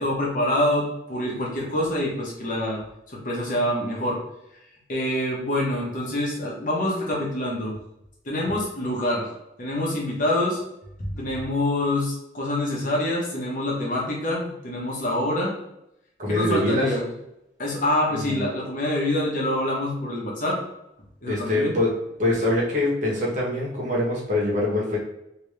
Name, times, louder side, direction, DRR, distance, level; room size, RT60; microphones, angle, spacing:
voice 1, 0.0-2.8 3.1-4.2 4.9-7.7 8.2-9.3 9.6-10.6 11.0-15.5 16.3-17.1 17.6-20.6 21.2-21.8, left 1 dB, 45° left, -2 dB, 1.1 m, -26 dB
voice 2, 16.2-16.9 18.1-18.5 21.3-21.9 22.2-25.0, left 1 dB, 45° right, -4 dB, 1.3 m, -24 dB
3.5 x 2.9 x 3.3 m, 0.83 s
head